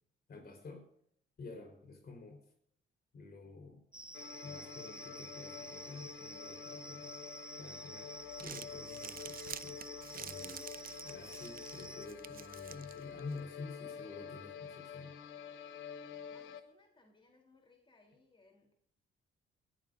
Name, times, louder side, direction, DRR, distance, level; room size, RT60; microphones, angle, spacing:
voice 1, 0.3-0.9 1.4-2.5 3.1-3.8 4.4-7.2 7.6-8.1 8.4-9.8 10.1-15.2, left 3 dB, 55° left, 3 dB, 4.4 m, -49 dB
sound 1, 3.9-12.1, right 1 dB, 5° right, 0.5 m, -50 dB
sound 2, 4.1-16.6, left 8 dB, 80° left, 1.2 m, -48 dB
Crumpling crinkling, 8.2-13.4, right 9 dB, 45° right, 0.6 m, -50 dB
voice 2, 16.2-18.7, left 3 dB, 25° left, 1 dB, 3.6 m, -66 dB
20.5 x 13.5 x 2.7 m, 0.66 s
cardioid pair, 90°, 20 cm